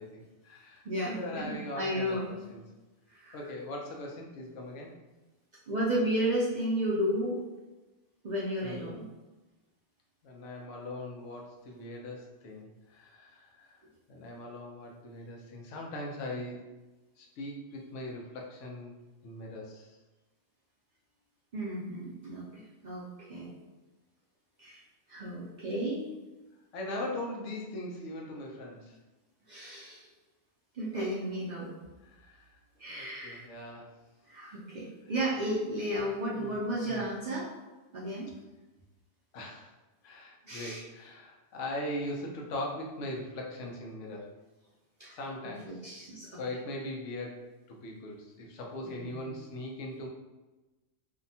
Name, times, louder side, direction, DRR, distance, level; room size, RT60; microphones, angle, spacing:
voice 1, 0.0-2.6 3.3-4.9 8.6-8.9 10.2-13.8 14.1-16.6 17.2-18.9 19.2-20.0 26.7-29.0 32.0-32.6 32.9-33.9 36.0-36.6 36.9-37.0 39.3-39.7 40.0-44.3 45.1-45.8 46.4-50.1, left 1 dB, 90° left, 0 dB, 1.0 m, -40 dB
voice 2, 0.8-2.3 3.1-3.4 5.7-7.4 8.2-9.0 21.5-23.5 24.6-24.8 25.1-26.1 29.5-30.1 30.7-31.7 32.8-33.5 34.3-37.5 37.9-38.3 40.5-40.8 45.0-45.2 45.7-46.4 48.8-49.4, equal, 60° right, -6 dB, 0.4 m, -33 dB
2.7 x 2.1 x 2.6 m, 1.1 s
omnidirectional pair, 1.2 m